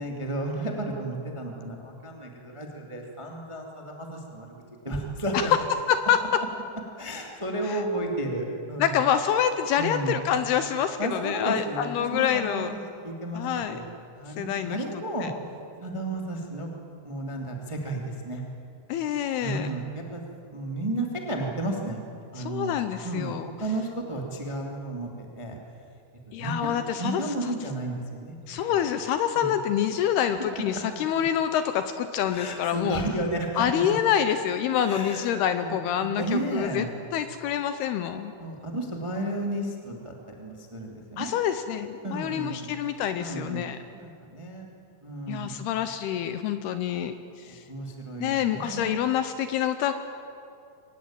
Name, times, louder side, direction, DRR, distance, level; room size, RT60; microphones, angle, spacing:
voice 1, 0.0-5.5 7.0-9.0 9.8-10.2 11.0-13.9 14.1-15.3 15.8-16.7 17.0-18.4 19.4-20.2 20.5-22.0 22.3-25.6 26.3-28.4 28.7-28.8 29.3-29.5 30.7-30.8 32.2-33.7 34.8-35.7 36.0-36.9 38.4-41.4 42.0-42.7 43.2-43.7 43.9-44.7 45.0-45.7 47.5-49.0, right 1 dB, 15° right, 1 dB, 1.1 m, -33 dB
voice 2, 5.9-6.4 7.7-7.8 8.8-12.7 13.3-13.8 14.4-14.8 15.2-15.3 18.9-19.7 22.4-23.5 26.3-27.2 28.5-33.0 33.6-36.8 37.1-38.3 41.2-43.8 45.3-47.6 48.2-49.9, left 9 dB, 80° left, 10 dB, 2.5 m, -26 dB
23.5 x 19.0 x 8.9 m, 2.6 s
omnidirectional pair, 5.2 m